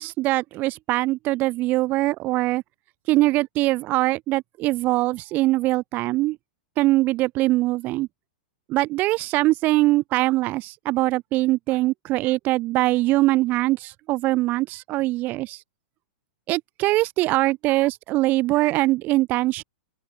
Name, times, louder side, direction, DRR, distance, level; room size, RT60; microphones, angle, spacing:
voice 1, 0.0-2.6 3.1-6.4 6.8-8.1 8.7-15.6 16.5-19.6, right 18 dB, 35° right, 0.4 m, -22 dB
open air
hypercardioid pair, 105°, 5 cm